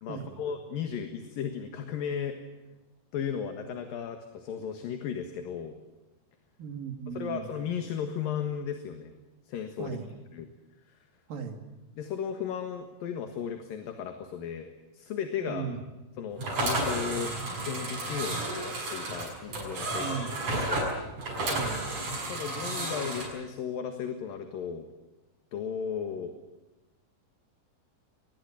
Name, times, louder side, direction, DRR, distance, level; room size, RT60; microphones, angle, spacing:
voice 1, 0.0-2.4 3.1-5.7 7.1-9.1 9.5-10.0 10.3-10.5 12.0-15.7 16.2-20.2 20.7-20.9 22.3-24.9 25.5-26.3, left 7 dB, 70° left, 7 dB, 3.2 m, -35 dB
voice 2, 6.6-7.5 9.8-10.1 11.3-11.6 15.5-15.8 20.0-20.4 21.5-21.9, right 7 dB, 65° right, 6 dB, 4.2 m, -37 dB
sound 1, 16.4-23.3, right 2 dB, 50° right, 7.6 m, -32 dB
23.5 x 20.5 x 9.0 m, 1.1 s
omnidirectional pair, 4.3 m